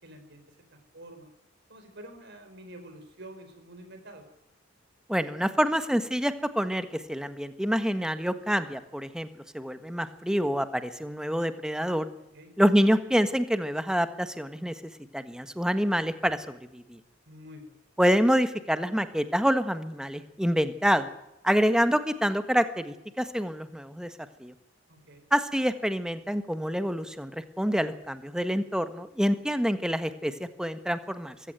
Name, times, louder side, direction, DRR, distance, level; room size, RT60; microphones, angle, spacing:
voice 1, 0.0-1.3 1.7-4.3 12.3-12.5 17.3-17.7 24.9-25.2, right 1 dB, 60° right, 7 dB, 4.7 m, -48 dB
voice 2, 5.1-9.3 9.5-12.1 12.6-14.7 15.1-17.0 18.0-21.1 21.4-24.1 24.4-24.5 25.3-31.3, equal, 5° right, 10 dB, 1.5 m, -27 dB
23.0 x 16.0 x 9.2 m, 0.85 s
head